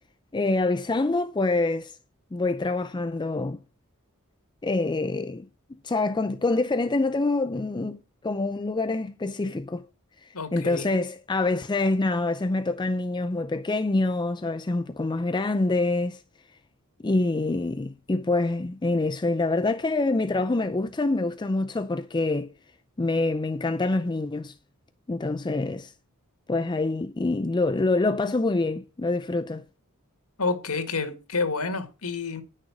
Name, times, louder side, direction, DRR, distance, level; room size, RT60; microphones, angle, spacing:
voice 1, 0.3-2.0 2.3-3.6 4.6-9.8 10.2-16.2 17.0-22.5 23.0-24.5 25.1-25.9 26.5-29.6, left 2 dB, 20° left, 0.4 m, -26 dB
voice 2, 10.3-10.9 30.4-32.4, left 4 dB, 80° left, 1.9 m, -29 dB
10.0 x 6.6 x 6.0 m
head